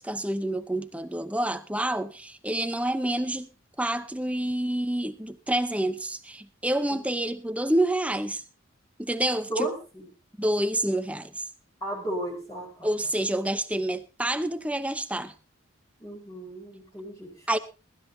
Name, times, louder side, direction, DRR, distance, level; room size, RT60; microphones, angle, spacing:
voice 1, 0.0-3.5 3.8-8.4 9.0-9.7 10.4-11.5 12.8-15.3 17.5-17.6, right 1 dB, 5° right, 0.8 m, -28 dB
voice 2, 9.5-10.1 11.8-12.9 16.0-17.6, right 1 dB, 15° left, 4.7 m, -34 dB
22.0 x 12.5 x 2.8 m
head